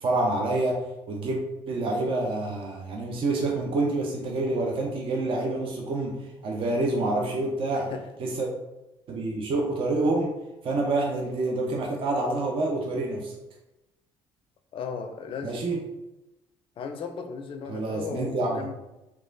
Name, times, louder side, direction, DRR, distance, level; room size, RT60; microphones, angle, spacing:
voice 1, 0.0-1.4 1.7-7.9 8.2-8.5 9.1-10.3 10.6-13.3 15.4-15.8 17.7-18.6, right 2 dB, 45° right, 0 dB, 0.5 m, -27 dB
voice 2, 7.7-8.1 14.7-15.6 16.8-18.7, left 6 dB, 45° left, 6 dB, 0.4 m, -36 dB
3.0 x 2.2 x 2.5 m, 0.97 s
hypercardioid pair, 60°, 12 cm